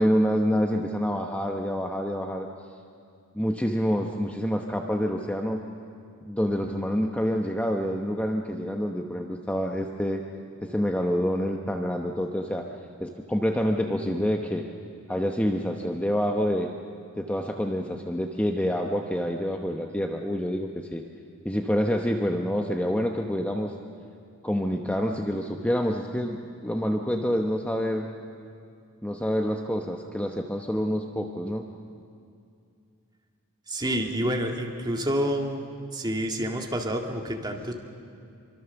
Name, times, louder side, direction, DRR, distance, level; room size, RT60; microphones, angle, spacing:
voice 1, 0.0-2.5 3.3-5.6 6.2-10.2 10.6-12.7 13.0-14.7 15.1-16.7 17.2-21.0 21.4-23.7 24.4-28.1 29.0-31.7, equal, 5° left, 2 dB, 1.0 m, -27 dB
voice 2, 33.7-35.6 35.9-37.7, equal, 20° right, 2 dB, 2.1 m, -28 dB
26.0 x 24.0 x 7.1 m, 2.4 s
head